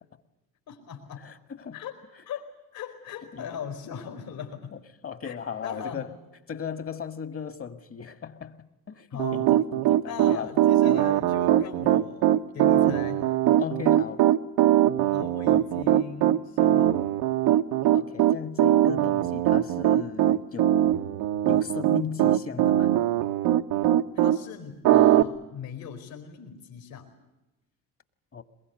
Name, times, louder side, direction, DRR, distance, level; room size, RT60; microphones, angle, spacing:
voice 1, 0.7-1.3 1.7-2.0 2.2-4.7 5.2-6.0 9.1-9.5 10.0-13.2 15.1-17.1 24.1-27.1, left 7 dB, 65° left, 4.7 m, -39 dB
voice 2, 1.2-1.8 3.3-3.5 4.7-6.1 6.5-8.6 8.9-10.5 13.6-14.3 17.9-21.0 21.4-23.0 28.3-28.4, left 6 dB, 35° left, 1.9 m, -37 dB
Piano, 9.2-24.4 24.8-25.2, right 12 dB, 75° right, 1.1 m, -21 dB
22.5 x 22.0 x 9.4 m
supercardioid pair, 80°, 39 cm